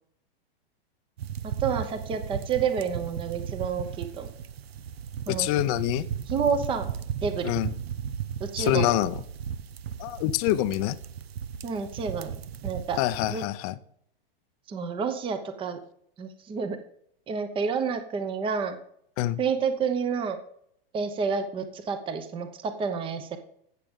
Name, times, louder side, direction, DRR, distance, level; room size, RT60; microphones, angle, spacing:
sound 1, 1.2-13.4, right 8 dB, 90° right, 0.9 m, -35 dB
voice 1, 1.4-4.3 5.3-5.5 6.3-6.9 7.2-7.5 8.4-8.9 11.6-12.3 12.6-13.0 13.3-13.4 14.7-15.8 16.2-16.8 17.3-18.8 19.4-20.4 20.9-23.4, right 6 dB, 15° right, 9 dB, 0.9 m, -29 dB
voice 2, 5.3-6.0 7.4-7.7 8.6-9.1 10.0-10.9 13.0-13.7 19.2-19.4, left 15 dB, 40° left, 14 dB, 0.6 m, -25 dB
16.0 x 6.8 x 3.7 m, 0.68 s
hypercardioid pair, 145°, 30 cm